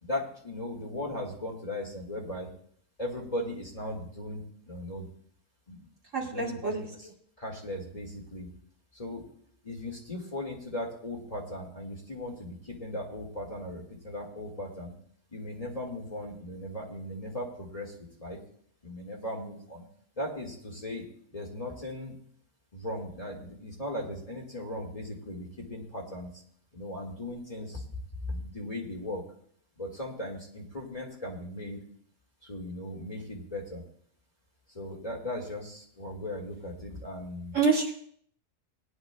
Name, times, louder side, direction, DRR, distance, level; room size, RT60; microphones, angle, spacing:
voice 1, 0.0-2.5 3.0-5.1 5.7-5.9 6.3-7.1 7.4-8.5 8.9-9.2 9.6-14.9 15.3-17.9 18.2-18.4 18.8-19.8 20.2-21.0 21.3-22.1 22.7-26.4 26.7-27.8 28.3-29.2 29.8-31.8 32.4-33.8 34.7-37.6, left 1 dB, 25° left, -2 dB, 1.9 m, -37 dB
voice 2, 6.1-6.9 37.5-37.9, right 4 dB, 60° right, -1 dB, 2.6 m, -27 dB
20.0 x 10.5 x 2.2 m, 0.63 s
omnidirectional pair, 1.5 m